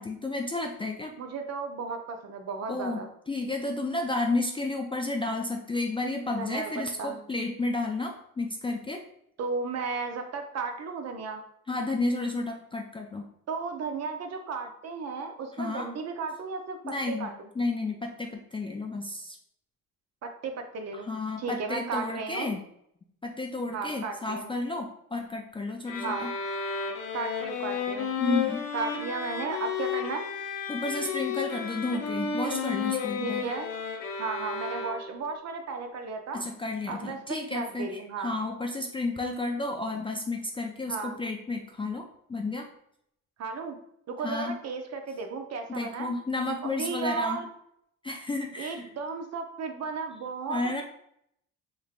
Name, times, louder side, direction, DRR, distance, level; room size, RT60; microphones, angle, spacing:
voice 1, 0.0-1.1 2.7-3.0 3.3-9.0 11.7-13.2 15.6-15.9 16.8-17.3 17.6-19.4 21.0-22.6 23.2-26.3 28.2-28.7 30.7-33.4 36.3-42.7 44.2-44.5 45.7-47.4 48.0-48.9 50.5-50.8, left 2 dB, 15° left, 1 dB, 0.3 m, -32 dB
voice 2, 1.2-3.1 6.3-7.2 9.4-11.4 13.5-17.5 20.2-21.1 21.4-22.5 23.7-24.5 26.0-26.3 27.1-28.1 28.7-30.3 33.2-33.7 34.2-36.4 36.9-38.4 40.9-41.2 43.4-43.8 44.1-46.1 46.6-47.5 48.6-50.8, right 4 dB, 50° right, 5 dB, 0.6 m, -34 dB
sound 1, 25.9-35.3, left 6 dB, 75° left, 0.7 m, -32 dB
3.2 x 3.2 x 2.4 m, 0.73 s
supercardioid pair, 80°, 34 cm